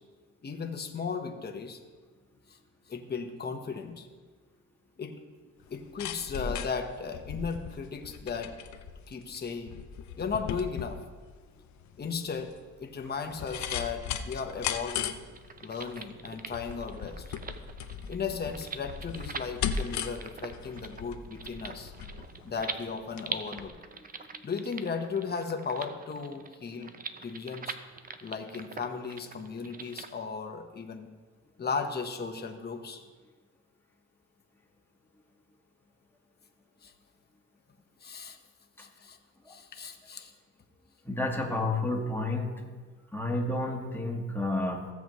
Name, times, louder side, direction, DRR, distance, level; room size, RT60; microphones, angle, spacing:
voice 1, 0.4-1.8 2.5-2.6 2.9-4.1 5.0-5.1 5.7-8.5 9.1-9.8 10.2-11.0 12.0-12.5 12.8-15.2 15.6-17.2 18.1-21.9 22.4-23.8 24.4-26.9 27.2-27.8 28.2-31.1 31.6-33.0 36.8-36.9 38.0-38.4 38.8-39.2 39.5-40.3, left 5 dB, 35° left, 4 dB, 1.1 m, -36 dB
sound 1, 5.6-23.3 23.6-23.7, left 7 dB, 70° left, 0.7 m, -38 dB
sound 2, 15.3-30.1, right 5 dB, 30° right, 0.6 m, -43 dB
voice 2, 41.0-42.5 43.1-44.9, left 2 dB, 5° left, 0 dB, 1.7 m, -30 dB
16.0 x 7.1 x 3.1 m, 1.4 s
cardioid pair, 90°, 30 cm